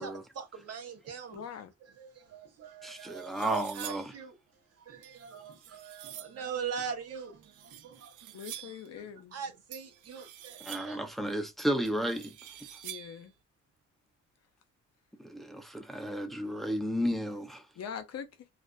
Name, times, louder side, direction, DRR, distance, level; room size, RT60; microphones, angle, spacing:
voice 1, 0.0-1.4 2.0-4.3 4.8-8.4 9.3-11.0, right 6 dB, 55° right, 0.8 m, -41 dB
voice 2, 1.3-1.7 8.3-9.4 12.8-13.3 17.8-18.5, left 7 dB, 55° left, 0.7 m, -42 dB
sound 1, 2.3-2.4 2.8-4.2 5.0-6.4 7.4-8.9 9.7-11.1 11.8-13.3, right 11 dB, 90° right, 0.5 m, -47 dB
voice 3, 2.8-4.0 10.6-12.3 15.2-17.6, equal, ahead, 0.5 m, -33 dB
2.4 x 2.4 x 2.2 m
cardioid pair, 90°, 30 cm